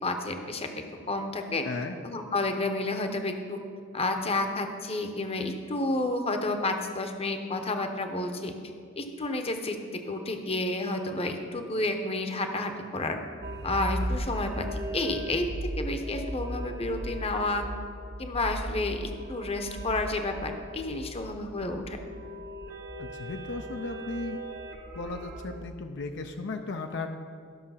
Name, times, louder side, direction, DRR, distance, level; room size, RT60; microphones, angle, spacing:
voice 1, 0.0-1.6 2.0-3.6 3.9-8.5 9.0-9.8 10.1-13.2 13.6-14.7 14.9-15.4 15.8-17.6 18.2-22.0, left 2 dB, 30° left, 6 dB, 0.9 m, -30 dB
voice 2, 1.6-2.0 23.0-24.5 24.9-27.1, left 3 dB, 60° left, 5 dB, 0.6 m, -36 dB
sound 1, 13.4-25.6, right 1 dB, 50° right, 0.9 m, -37 dB
13.5 x 6.3 x 5.7 m, 2.3 s
head